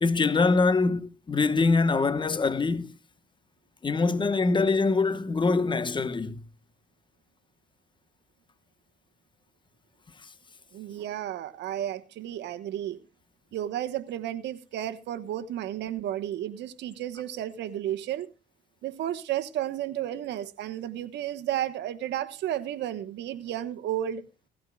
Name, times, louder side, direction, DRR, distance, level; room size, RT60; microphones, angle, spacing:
voice 1, 0.0-2.9 3.8-6.4, left 4 dB, 25° left, 1.1 m, -24 dB
voice 2, 10.7-13.0 13.5-18.3 18.8-24.2, right 11 dB, 80° right, 1.3 m, -32 dB
18.0 x 16.0 x 2.3 m
cardioid pair, 105°, 18 cm